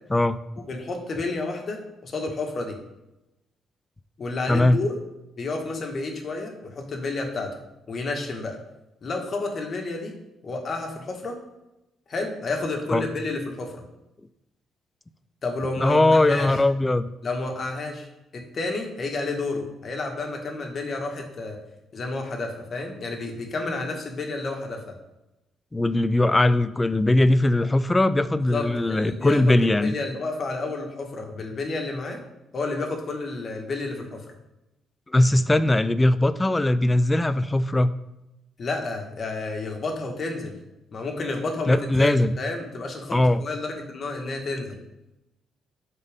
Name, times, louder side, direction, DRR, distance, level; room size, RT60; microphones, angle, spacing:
voice 1, 0.1-0.7 4.5-4.8 12.9-13.1 15.8-17.1 25.7-29.9 35.1-37.9 41.7-42.4 43.1-43.4, left 1 dB, 15° left, 13 dB, 0.4 m, -20 dB
voice 2, 0.7-2.8 4.2-5.0 5.4-7.6 7.9-8.6 9.0-10.1 10.4-11.4 12.1-13.8 15.4-16.5 17.2-18.1 18.3-21.6 21.9-25.0 28.5-29.5 29.8-32.2 32.5-34.2 38.6-40.5 40.9-44.8, left 3 dB, 45° left, 3 dB, 1.6 m, -30 dB
12.0 x 4.1 x 3.6 m, 0.94 s
cardioid pair, 90°, 0 cm